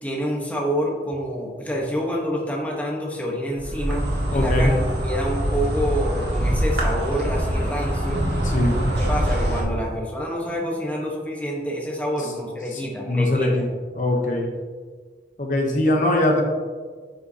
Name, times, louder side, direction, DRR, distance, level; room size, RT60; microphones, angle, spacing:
voice 1, 0.0-4.7 5.0-8.2 9.0-13.6, equal, 10° left, -2 dB, 1.0 m, -27 dB
Insect, 3.6-9.6, equal, 80° right, 1.8 m, -24 dB
voice 2, 4.3-4.8 8.5-8.8 12.7-13.7 14.0-14.5 15.4-16.4, left 1 dB, 45° left, 1 dB, 0.8 m, -21 dB
9.5 x 5.5 x 2.8 m, 1.6 s
head